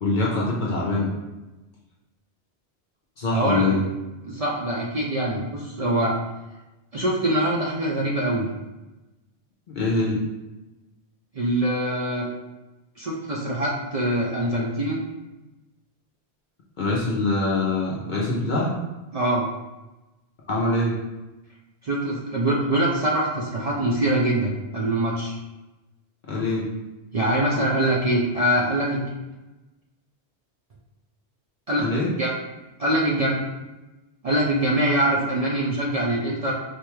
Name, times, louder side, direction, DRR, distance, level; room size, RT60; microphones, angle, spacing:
voice 1, 0.0-1.1 3.2-3.8 9.8-10.2 16.8-18.7 20.5-21.0 26.3-26.7 31.8-32.1, left 2 dB, 50° left, -5 dB, 0.7 m, -24 dB
voice 2, 3.3-3.7 4.2-6.2 6.9-8.5 11.3-12.3 13.0-15.0 19.1-19.5 21.8-25.4 27.1-29.1 31.7-31.8 32.2-32.3 32.8-33.4 34.2-36.5, right 1 dB, 55° right, -4 dB, 0.4 m, -23 dB
4.3 x 2.3 x 3.0 m, 1.1 s
omnidirectional pair, 1.1 m